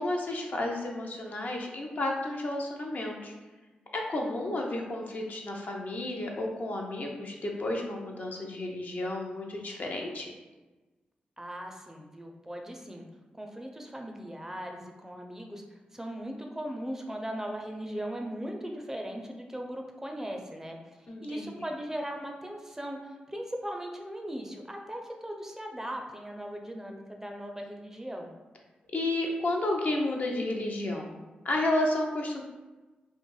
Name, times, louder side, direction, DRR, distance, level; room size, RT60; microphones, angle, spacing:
voice 1, 0.0-3.3 3.9-10.3 21.1-21.5 28.9-31.1 31.4-32.4, left 1 dB, 55° left, 0 dB, 0.5 m, -31 dB
voice 2, 11.4-13.1 13.3-20.8 21.2-28.3, equal, 15° right, 2 dB, 0.4 m, -38 dB
2.5 x 2.2 x 3.1 m, 1.2 s
supercardioid pair, 50°, 3 cm